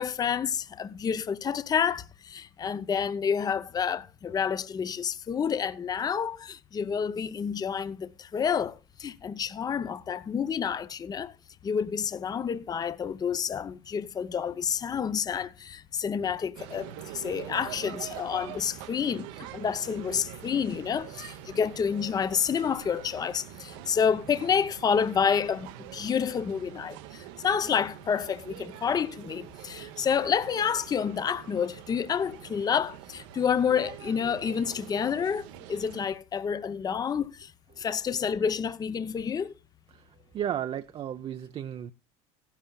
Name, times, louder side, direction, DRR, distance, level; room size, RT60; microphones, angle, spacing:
voice 1, 0.0-11.3 11.6-37.5 37.8-39.5, left 7 dB, 25° left, 0.6 m, -29 dB
sound 1, 16.5-36.0, right 13 dB, 75° right, 0.8 m, -45 dB
voice 2, 39.9-41.9, right 10 dB, 35° right, 0.5 m, -34 dB
15.5 x 11.5 x 2.3 m
supercardioid pair, 100°, 16 cm